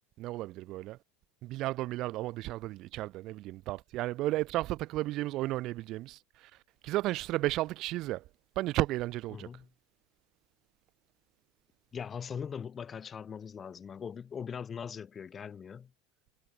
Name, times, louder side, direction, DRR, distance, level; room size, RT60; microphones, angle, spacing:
voice 1, 0.2-1.0 1.4-6.5 6.8-8.2 8.5-9.5, right 17 dB, 55° right, 1.5 m, -33 dB
voice 2, 9.3-9.7 11.9-15.9, left 7 dB, 30° left, 2.7 m, -41 dB
hypercardioid pair, 90°, 0 cm